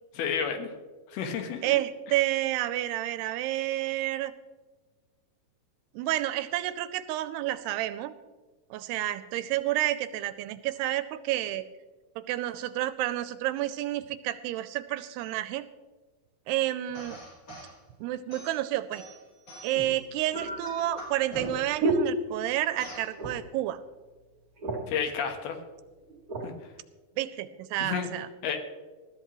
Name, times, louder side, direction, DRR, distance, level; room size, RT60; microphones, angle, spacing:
voice 1, 0.1-0.7 1.1-1.7 24.9-25.6 26.4-26.5 27.8-28.1 28.4-28.6, left 7 dB, 70° left, 6 dB, 3.0 m, -31 dB
voice 2, 1.6-4.3 5.9-8.1 8.7-11.6 12.2-15.6 16.5-17.2 18.0-19.0 19.6-23.8 27.2-28.3, right 14 dB, 85° right, 13 dB, 2.5 m, -30 dB
sound 1, 16.9-17.7 18.3-19.9 20.3-21.8 22.8-23.1, equal, 30° left, 4.8 m, -41 dB
sound 2, 18.8-18.9 19.7-22.8 23.1-23.6 24.0-24.1 24.4-25.1 25.7-26.5 27.1-27.3, right 3 dB, 35° right, 1.6 m, -33 dB
20.0 x 13.5 x 3.1 m, 1.3 s
omnidirectional pair, 4.8 m